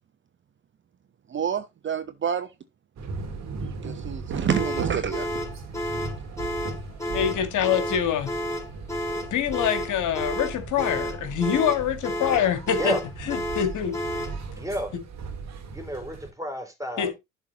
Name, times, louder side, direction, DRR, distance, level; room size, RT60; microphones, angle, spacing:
voice 1, 1.3-2.5 3.8-5.3, right 8 dB, 35° right, 0.8 m, -28 dB
sound 1, 3.0-16.3, right 4 dB, 50° right, 2.2 m, -37 dB
sound 2, 4.5-14.4, left 1 dB, 10° left, 3.8 m, -31 dB
voice 2, 7.1-8.3 9.3-12.9 13.3-13.9 17.0-17.1, left 9 dB, 55° left, 1.9 m, -25 dB
voice 3, 14.5-14.9 15.7-17.2, equal, 10° right, 3.6 m, -31 dB
11.5 x 4.1 x 4.0 m
figure-of-eight pair, 50°, 35 cm